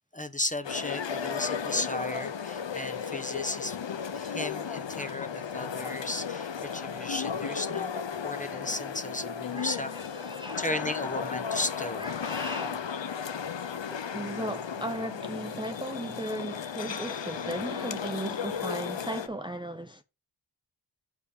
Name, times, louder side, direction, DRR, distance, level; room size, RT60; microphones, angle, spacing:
voice 1, 0.1-3.8 4.1-9.9 10.6-12.1, left 1 dB, 15° left, 1.0 m, -35 dB
Public Space big, 0.6-19.3, left 7 dB, 75° left, 0.8 m, -35 dB
voice 2, 9.5-10.7 12.0-12.9 13.9-20.0, right 1 dB, 10° right, 0.7 m, -37 dB
6.8 x 4.9 x 5.1 m
wide cardioid pair, 45°, 45 cm